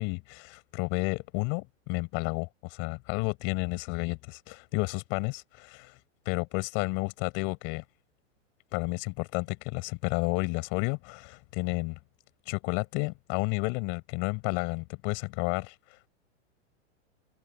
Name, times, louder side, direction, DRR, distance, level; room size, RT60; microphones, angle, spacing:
voice 1, 0.0-6.0 6.3-7.8 8.7-12.0 12.5-16.1, left 31 dB, 30° left, 7.3 m, -31 dB
supercardioid pair, 170°, 37 cm